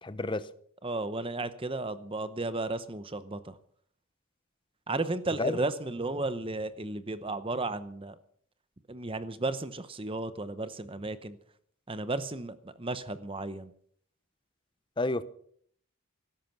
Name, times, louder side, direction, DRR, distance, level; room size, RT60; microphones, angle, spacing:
voice 1, 0.0-0.5 5.4-5.5 15.0-15.2, left 2 dB, 20° left, 0.7 m, -30 dB
voice 2, 0.8-3.6 4.9-8.1 8.9-11.4 11.9-13.7, right 2 dB, 25° right, 0.8 m, -34 dB
16.0 x 13.0 x 6.0 m
head